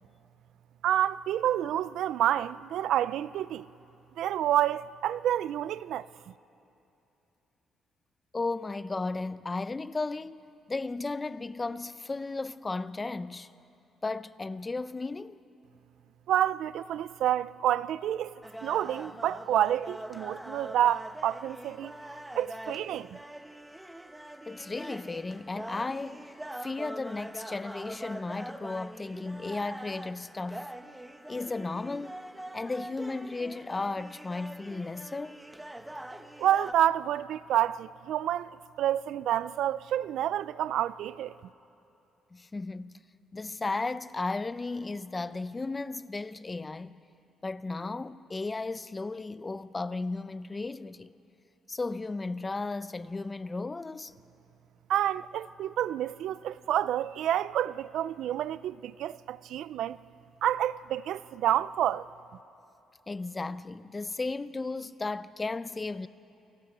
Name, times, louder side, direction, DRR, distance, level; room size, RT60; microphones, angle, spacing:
voice 1, 0.8-3.7 4.2-6.1 16.3-18.3 18.6-21.9 22.4-23.2 36.4-38.5 38.8-41.3 54.9-60.0 60.4-62.1, right 11 dB, 80° right, 0.5 m, -28 dB
voice 2, 8.3-10.4 10.7-13.5 14.0-15.4 24.5-26.3 26.6-30.7 31.3-32.1 32.5-35.4 42.3-42.9 43.3-46.9 47.4-51.1 51.7-54.1 63.1-66.1, left 3 dB, 25° left, 0.6 m, -35 dB
sound 1, 18.4-36.7, right 1 dB, 10° right, 1.0 m, -43 dB
29.5 x 23.0 x 6.1 m
cardioid pair, 90°, 0 cm